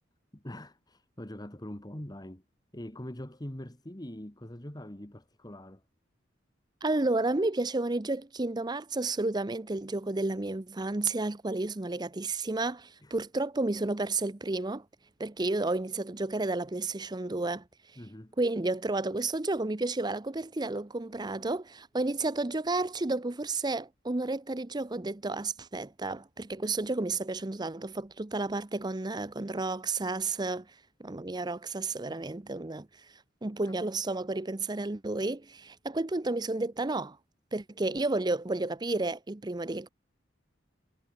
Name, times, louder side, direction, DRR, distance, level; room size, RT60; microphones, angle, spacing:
voice 1, 0.3-2.4 2.7-5.8 13.0-13.1 18.0-18.4 33.6-33.7, left 1 dB, 20° left, 1.8 m, -43 dB
voice 2, 6.8-14.8 15.2-17.6 18.4-30.6 31.0-32.9 33.4-37.2 37.5-39.9, right 2 dB, 20° right, 0.7 m, -31 dB
head